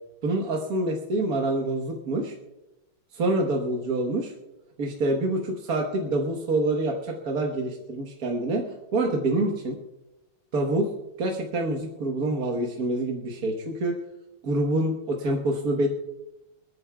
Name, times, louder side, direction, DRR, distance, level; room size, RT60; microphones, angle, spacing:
voice 1, 0.2-2.3 3.1-4.3 4.8-9.8 10.5-10.9 11.2-13.9 14.4-15.9, right 2 dB, 50° right, 0 dB, 1.5 m, -26 dB
28.5 x 9.6 x 2.3 m, 1.0 s
omnidirectional pair, 2.3 m